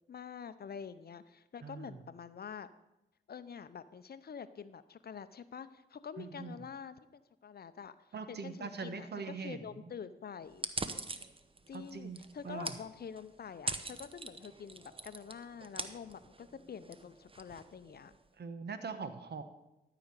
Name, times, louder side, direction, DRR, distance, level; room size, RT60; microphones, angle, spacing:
voice 1, 0.1-2.7 3.3-10.7 11.7-18.1, left 7 dB, 55° left, 13 dB, 0.6 m, -47 dB
voice 2, 1.6-2.0 6.2-6.6 8.1-9.9 11.7-12.2 12.4-12.8 18.4-19.4, right 5 dB, 60° right, 9 dB, 1.1 m, -42 dB
sound 1, 10.5-18.3, right 3 dB, 30° right, 0.9 m, -44 dB
12.5 x 5.0 x 6.6 m, 0.95 s
supercardioid pair, 50°, 20 cm